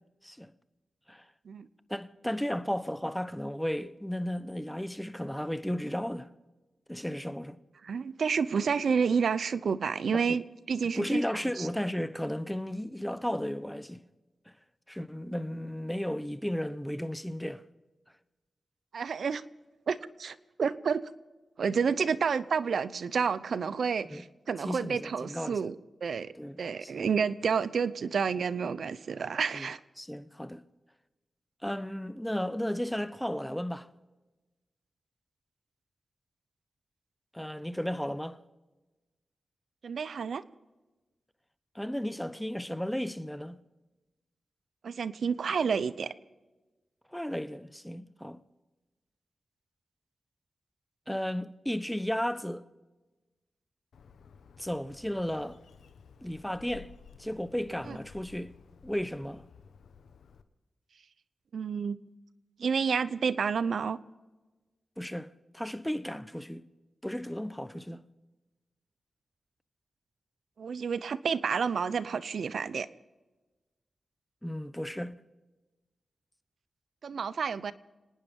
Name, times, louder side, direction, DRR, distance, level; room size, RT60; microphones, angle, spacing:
voice 1, 1.9-6.3 6.9-7.6 10.1-10.4 10.9-14.0 14.9-17.6 24.0-24.2 24.6-25.7 26.4-27.1 29.5-29.7 30.0-30.6 31.6-33.9 37.3-38.4 41.7-43.6 47.1-48.4 51.1-52.6 54.6-55.6 56.2-56.9 57.2-58.5 58.8-59.4 65.0-66.7 67.0-68.0 74.4-75.1, equal, 5° left, 1.0 m, -34 dB
voice 2, 7.8-11.2 11.6-11.7 18.9-19.4 19.9-21.0 21.6-25.8 26.0-29.8 39.8-40.4 44.8-46.1 57.9-58.0 61.5-62.0 62.6-64.0 70.6-72.9 77.0-77.7, right 6 dB, 75° right, 0.7 m, -30 dB
Bird, 53.9-60.4, left 6 dB, 85° left, 0.9 m, -55 dB
27.0 x 9.7 x 5.4 m
cardioid pair, 45°, 0 cm